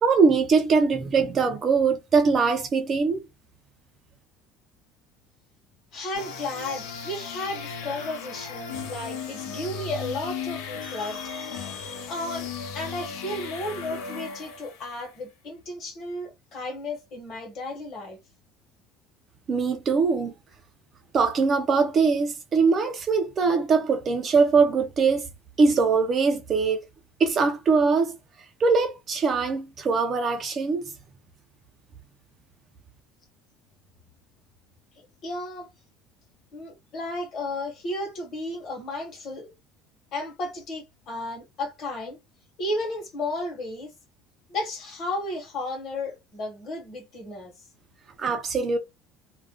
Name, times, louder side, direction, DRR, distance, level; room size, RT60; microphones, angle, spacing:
voice 1, 0.0-3.2 19.5-20.3 21.1-25.3 25.6-26.8 27.2-28.2 28.6-30.9 48.2-48.8, right 4 dB, 25° right, 0.4 m, -22 dB
voice 2, 5.9-18.2 35.2-35.7 36.5-39.5 40.1-42.2 42.6-43.9 44.5-47.5, left 2 dB, 35° left, 1.1 m, -33 dB
sound 1, 6.1-15.0, left 6 dB, 85° left, 0.7 m, -36 dB
2.4 x 2.2 x 3.4 m
cardioid pair, 180°, 0 cm